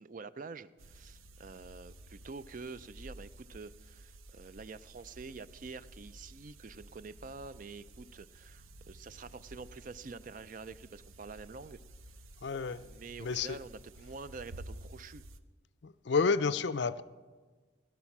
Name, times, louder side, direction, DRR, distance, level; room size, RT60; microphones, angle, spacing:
voice 1, 0.0-11.8 12.7-15.2, right 4 dB, 40° right, 15 dB, 0.4 m, -47 dB
sound 1, 0.8-15.4, right 1 dB, 90° right, 0.8 m, -53 dB
voice 2, 12.4-12.8 13.2-13.6 15.8-17.0, left 5 dB, 55° left, 15 dB, 0.5 m, -30 dB
17.0 x 12.0 x 6.0 m, 1.4 s
head